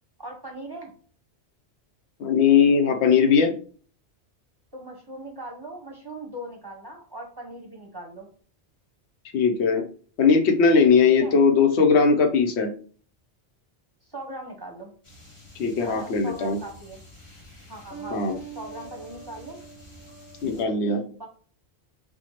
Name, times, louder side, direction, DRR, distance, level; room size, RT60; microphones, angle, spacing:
voice 1, 0.2-0.9 4.7-8.3 11.2-11.3 14.1-14.9 15.8-17.0 17.7-19.6 20.5-21.3, right 1 dB, 25° right, 0 dB, 0.7 m, -39 dB
voice 2, 2.2-3.5 9.3-9.8 10.2-12.7 15.6-16.6 18.1-18.3 20.4-21.0, left 5 dB, 80° left, 5 dB, 0.9 m, -19 dB
sound 1, 15.0-20.6, right 3 dB, 30° left, 1.0 m, -44 dB
4.5 x 2.2 x 2.9 m, 0.42 s
omnidirectional pair, 1.1 m